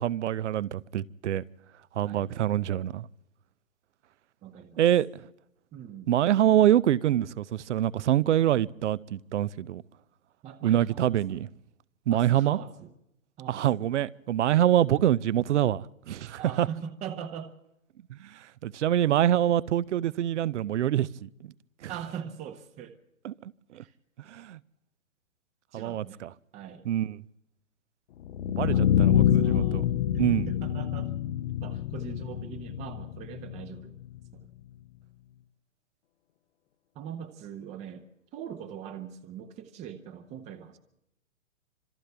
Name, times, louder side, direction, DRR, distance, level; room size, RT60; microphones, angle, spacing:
voice 1, 0.0-1.4 2.0-3.1 4.8-5.2 6.1-9.8 10.6-11.5 12.1-12.6 13.5-16.7 18.1-21.3 21.8-21.9 23.2-23.3 23.7-23.8 24.3-24.6 25.7-26.3 26.9-27.2 28.6-29.8 30.2-30.5, right 11 dB, 60° right, 0.7 m, -25 dB
voice 2, 4.4-4.8 5.7-6.1 10.4-11.4 12.1-12.9 13.4-13.8 16.4-17.5 21.9-23.0 23.7-24.0 25.7-26.2 26.5-26.9 28.6-31.2 31.6-34.0 34.3-34.5 36.9-38.1 38.3-40.8, right 8 dB, 15° right, 0.8 m, -41 dB
sound 1, 28.2-34.2, left 10 dB, 45° left, 0.8 m, -26 dB
30.0 x 26.0 x 3.4 m
hypercardioid pair, 125°, 40 cm